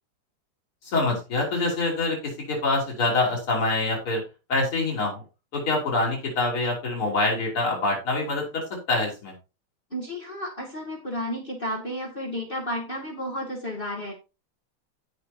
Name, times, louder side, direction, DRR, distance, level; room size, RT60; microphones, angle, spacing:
voice 1, 0.8-4.2 4.5-5.2 5.5-9.3, left 2 dB, 80° left, -2 dB, 4.3 m, -25 dB
voice 2, 9.9-14.1, equal, 25° left, -1 dB, 2.4 m, -32 dB
16.0 x 6.0 x 2.8 m, 0.29 s
omnidirectional pair, 2.3 m